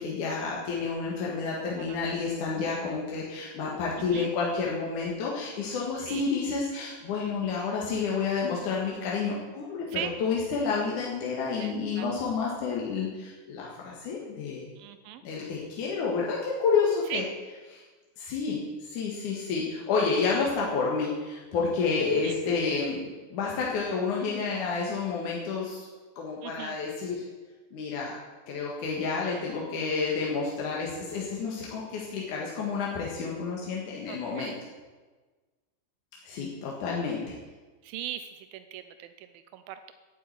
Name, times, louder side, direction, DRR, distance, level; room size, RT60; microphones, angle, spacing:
voice 1, 0.0-14.6 15.2-17.2 17.7-17.8 18.2-25.9 26.2-27.2 27.7-28.2 28.5-34.5 36.2-37.3, left 5 dB, 55° left, -3 dB, 2.6 m, -30 dB
voice 2, 11.6-12.1 14.8-15.2 17.1-17.2 22.2-22.3 26.4-26.8 34.1-34.6 37.8-39.9, right 12 dB, 85° right, 10 dB, 2.1 m, -39 dB
11.5 x 8.3 x 9.4 m, 1.3 s
omnidirectional pair, 4.9 m